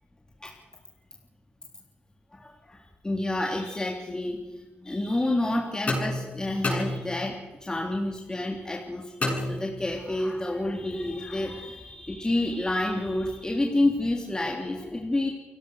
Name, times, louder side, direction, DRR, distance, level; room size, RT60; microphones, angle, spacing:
voice 1, 2.3-15.3, left 1 dB, 20° left, 0 dB, 3.7 m, -29 dB
sound 1, 5.9-7.5 9.2-10.2, left 2 dB, 35° left, 7.7 m, -31 dB
29.5 x 16.5 x 6.7 m, 1.1 s
cardioid pair, 70°, 4 cm